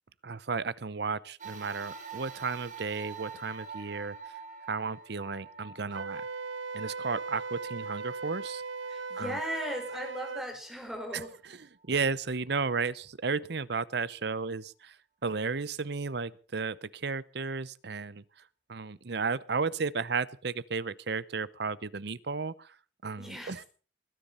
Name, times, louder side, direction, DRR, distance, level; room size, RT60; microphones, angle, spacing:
voice 1, 0.2-4.2 4.7-6.2 6.7-8.6 9.2-9.3 11.1-11.2 11.9-15.0 15.2-18.2 18.7-22.7 23.0-23.6, right 4 dB, 60° right, 19 dB, 0.8 m, -33 dB
sound 1, 1.4-10.0 10.6-10.7 11.8-11.9, right 5 dB, 40° right, 3.8 m, -47 dB
Wind instrument woodwind instrument, 5.9-10.5, right 4 dB, 85° right, 0.9 m, -38 dB
voice 2, 8.9-11.3 23.2-23.7, equal, ahead, 2 dB, 4.7 m, -38 dB
21.0 x 10.5 x 5.5 m, 0.39 s
head